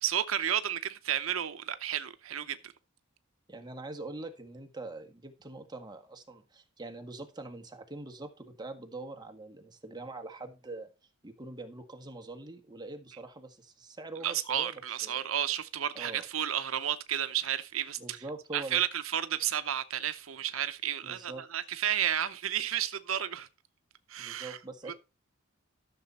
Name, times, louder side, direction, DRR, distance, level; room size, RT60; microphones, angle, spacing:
voice 1, 0.0-2.6 14.2-18.2 18.5-23.5 24.1-24.6 24.9-25.0, right 10 dB, 85° right, 0.7 m, -32 dB
voice 2, 3.5-10.9 11.2-15.2 15.9-16.3 18.0-18.8 21.0-21.4 24.2-24.9, right 2 dB, 20° right, 1.6 m, -43 dB
13.0 x 6.9 x 4.2 m
head